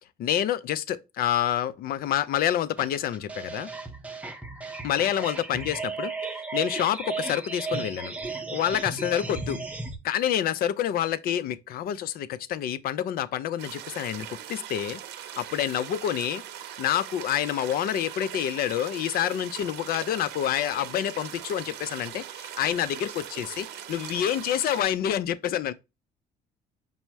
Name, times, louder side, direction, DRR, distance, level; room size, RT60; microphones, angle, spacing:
voice 1, 0.2-3.7 4.8-6.1 6.5-9.6 10.0-15.0 15.4-16.4 16.8-25.7, left 10 dB, 60° left, 0.5 m, -28 dB
sound 1, 2.8-10.0, right 3 dB, 10° right, 0.7 m, -35 dB
sound 2, 13.6-24.8, right 10 dB, 85° right, 0.7 m, -41 dB
5.4 x 2.1 x 4.5 m
cardioid pair, 110°, 17 cm